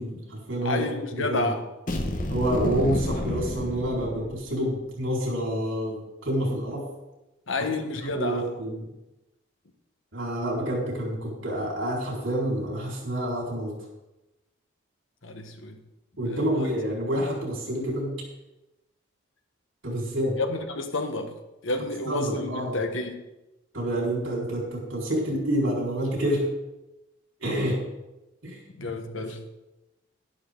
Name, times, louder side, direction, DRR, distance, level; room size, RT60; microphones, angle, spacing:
voice 1, 0.0-1.5 2.3-6.8 7.6-7.7 8.0-8.9 10.1-13.7 16.2-18.1 19.8-20.4 22.0-22.8 23.7-26.5 27.4-27.8 28.4-28.9 29.1-29.2, right 1 dB, 75° right, -2 dB, 4.6 m, -28 dB
voice 2, 0.6-1.6 7.5-8.4 15.2-15.8 16.3-16.7 20.4-21.3 21.6-23.2 28.8-29.4, left 2 dB, 80° left, 6 dB, 1.4 m, -30 dB
sound 1, 1.9-4.6, left 1 dB, 40° left, 1.1 m, -30 dB
11.5 x 11.5 x 3.9 m, 0.98 s
head